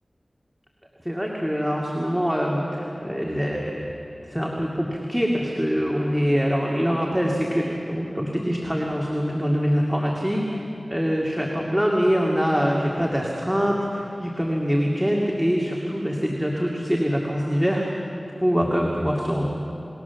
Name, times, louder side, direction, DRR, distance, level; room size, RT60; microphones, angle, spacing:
voice 1, 1.0-3.8 4.3-10.4 10.9-17.8 18.4-19.5, equal, 5° right, -2 dB, 2.5 m, -24 dB
27.5 x 21.0 x 7.2 m, 2.9 s
wide cardioid pair, 65°, 0 cm